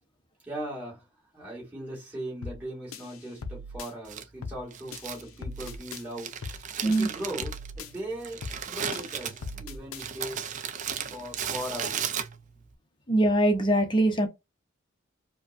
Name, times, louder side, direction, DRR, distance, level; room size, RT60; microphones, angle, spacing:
voice 1, 0.4-1.1 1.3-10.4 11.1-12.1, right 1 dB, 10° right, 2.2 m, -39 dB
sound 1, 2.4-2.6 2.9-3.9 4.4-4.6 4.9-6.0 6.4-6.6 6.9-7.9 8.4-8.6 8.9-10.0, left 3 dB, 75° left, 0.5 m, -39 dB
Crumpling crinkling, 4.1-12.7, right 8 dB, 35° right, 0.4 m, -36 dB
voice 2, 13.1-14.3, right 1 dB, 20° left, 0.7 m, -22 dB
4.8 x 2.2 x 2.5 m
head